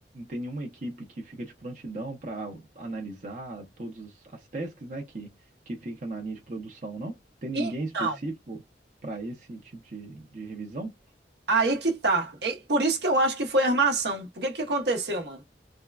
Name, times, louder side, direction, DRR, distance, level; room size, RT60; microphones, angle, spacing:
voice 1, 0.1-5.3 5.7-8.6 9.0-10.9, right 2 dB, 45° right, 0.8 m, -37 dB
voice 2, 7.5-8.2 11.5-15.4, right 2 dB, 65° right, 1.0 m, -25 dB
3.5 x 2.2 x 2.3 m
head